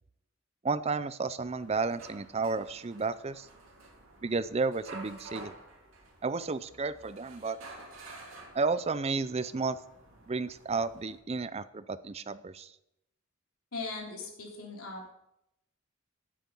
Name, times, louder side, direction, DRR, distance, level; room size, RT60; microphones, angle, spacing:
voice 1, 0.6-3.5 4.2-5.5 6.2-7.6 8.5-9.8 10.3-12.7, right 4 dB, 30° right, 15 dB, 0.5 m, -32 dB
sound 1, 1.4-11.2, right 2 dB, 65° right, 2.7 m, -51 dB
voice 2, 13.7-15.1, left 3 dB, 75° left, 0 dB, 3.2 m, -39 dB
9.7 x 8.4 x 5.5 m, 0.82 s
head